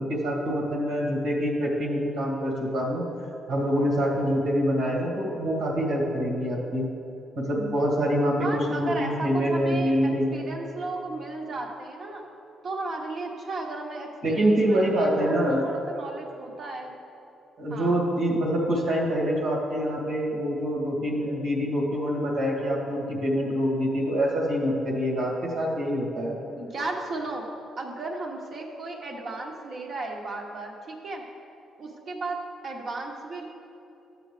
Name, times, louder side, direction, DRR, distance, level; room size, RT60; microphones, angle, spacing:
voice 1, 0.0-3.0 3.5-6.9 7.4-10.5 14.2-15.7 17.6-26.4, equal, 80° right, -4 dB, 2.3 m, -25 dB
voice 2, 8.4-12.2 12.6-16.9 17.7-18.0 26.6-27.4 27.8-31.2 31.8-32.4 32.6-33.5, right 2 dB, 55° right, 0 dB, 1.4 m, -35 dB
13.0 x 7.9 x 3.3 m, 2.9 s
cardioid pair, 90°, 0 cm